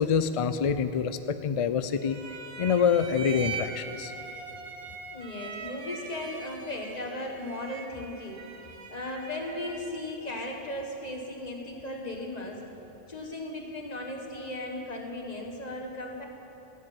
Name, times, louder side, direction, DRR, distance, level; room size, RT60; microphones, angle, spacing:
voice 1, 0.0-2.2 2.6-4.1, left 6 dB, 55° left, 11 dB, 0.3 m, -26 dB
sound 1, 2.0-10.1, right 5 dB, 70° right, 1.4 m, -42 dB
voice 2, 5.1-8.5 8.9-12.6 13.1-16.3, left 1 dB, 40° left, 1 dB, 1.7 m, -36 dB
15.0 x 7.8 x 9.2 m, 3.0 s
omnidirectional pair, 1.1 m